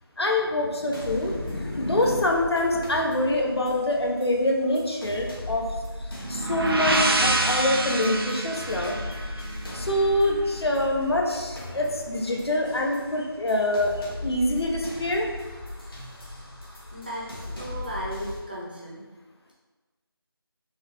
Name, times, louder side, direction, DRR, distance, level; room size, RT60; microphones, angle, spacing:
voice 1, 0.2-5.6 6.0-14.0 14.2-15.3, left 1 dB, 85° left, 0 dB, 0.7 m, -25 dB
sound 1, 0.9-18.4, left 1 dB, 65° left, 1.1 m, -38 dB
sound 2, 6.2-10.0, right 2 dB, 70° right, 0.5 m, -26 dB
voice 2, 16.9-19.0, equal, 20° right, -6 dB, 0.6 m, -35 dB
4.7 x 2.1 x 2.9 m, 1.3 s
figure-of-eight pair, 175°, 13 cm